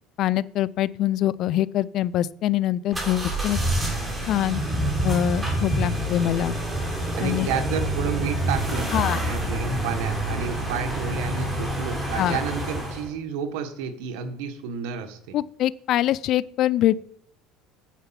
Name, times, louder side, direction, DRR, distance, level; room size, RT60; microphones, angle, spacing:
voice 1, 0.2-3.6 4.2-4.6 5.0-6.6 7.2-7.5 8.9-9.2 12.2-12.4 15.3-17.0, left 13 dB, 55° left, 19 dB, 0.4 m, -24 dB
sound 1, 2.9-13.1, right 1 dB, 10° right, 3.9 m, -27 dB
voice 2, 7.2-8.9 9.3-15.4, right 6 dB, 80° right, 8 dB, 1.3 m, -31 dB
9.2 x 6.7 x 5.7 m, 0.68 s
supercardioid pair, 120°, 0 cm